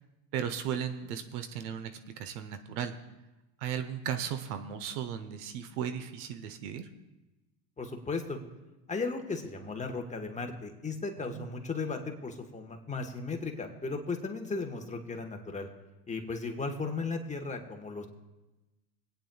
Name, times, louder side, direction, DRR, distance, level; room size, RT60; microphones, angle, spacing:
voice 1, 0.3-2.9 3.6-6.9 11.3-11.5, right 8 dB, 75° right, 10 dB, 1.0 m, -36 dB
voice 2, 7.8-8.4 8.9-15.7 16.1-18.1, left 4 dB, 15° left, 3 dB, 1.3 m, -36 dB
26.0 x 9.1 x 2.3 m, 1.1 s
supercardioid pair, 100°, 46 cm